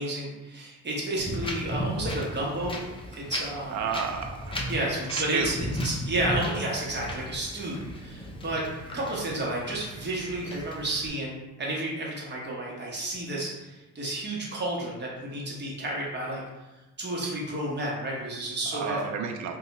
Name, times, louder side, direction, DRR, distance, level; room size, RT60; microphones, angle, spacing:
voice 1, 0.0-2.8 3.1-3.9 4.7-8.7 8.9-16.4 17.0-19.1, right 1 dB, 35° right, -3 dB, 1.1 m, -31 dB
Wind, 1.2-11.1, equal, 15° left, 0.5 m, -36 dB
voice 2, 3.7-4.6 5.1-5.5 18.7-19.6, right 6 dB, 70° right, 5 dB, 0.5 m, -31 dB
2.6 x 2.3 x 4.0 m, 1.1 s
cardioid pair, 90°, 30 cm